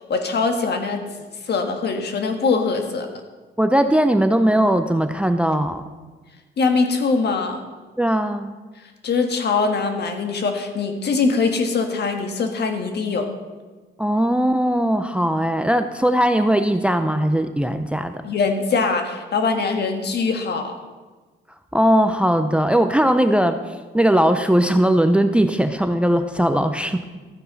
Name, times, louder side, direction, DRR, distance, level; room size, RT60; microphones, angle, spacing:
voice 1, 0.1-1.0 1.4-3.1 6.6-7.6 9.0-13.3 18.2-20.7, left 4 dB, 55° left, 5 dB, 1.5 m, -22 dB
voice 2, 3.6-5.8 8.0-8.5 14.0-18.2 21.7-27.0, right 1 dB, 5° right, 9 dB, 0.5 m, -19 dB
12.5 x 9.1 x 4.1 m, 1.3 s
cardioid pair, 90°, 20 cm